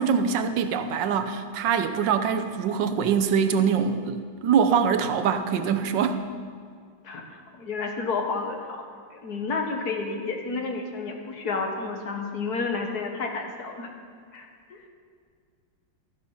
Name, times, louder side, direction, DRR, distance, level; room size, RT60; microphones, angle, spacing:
voice 1, 0.0-6.2, right 7 dB, 65° right, 9 dB, 1.3 m, -24 dB
voice 2, 7.0-8.8 9.1-13.9 14.3-14.8, left 4 dB, 55° left, 3 dB, 1.6 m, -31 dB
13.5 x 10.5 x 5.6 m, 2.2 s
omnidirectional pair, 2.3 m